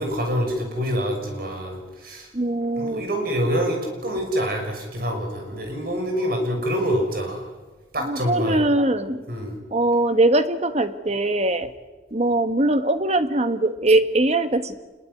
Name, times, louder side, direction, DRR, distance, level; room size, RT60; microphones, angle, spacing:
voice 1, 0.0-2.3 2.8-7.5 7.9-8.6 9.3-9.6, equal, 50° right, 4 dB, 6.3 m, -26 dB
voice 2, 2.3-3.0 8.0-9.3 9.7-11.7 12.1-14.7, right 2 dB, 35° right, 10 dB, 1.4 m, -21 dB
26.0 x 21.5 x 9.6 m, 1.2 s
head